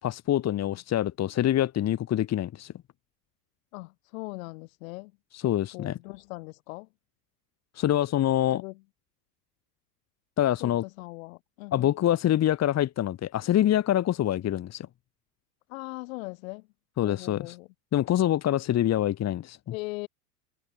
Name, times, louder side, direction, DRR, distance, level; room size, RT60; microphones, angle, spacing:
voice 1, 0.0-2.7 5.3-6.0 7.7-8.6 10.4-10.8 11.7-14.9 17.0-17.6 17.9-19.6, left 12 dB, 30° left, 4.5 m, -25 dB
voice 2, 3.7-5.1 5.7-6.9 8.5-8.8 10.6-11.9 15.7-16.7 17.0-17.7 19.7-20.1, left 23 dB, 55° left, 7.7 m, -40 dB
figure-of-eight pair, 90°, 49 cm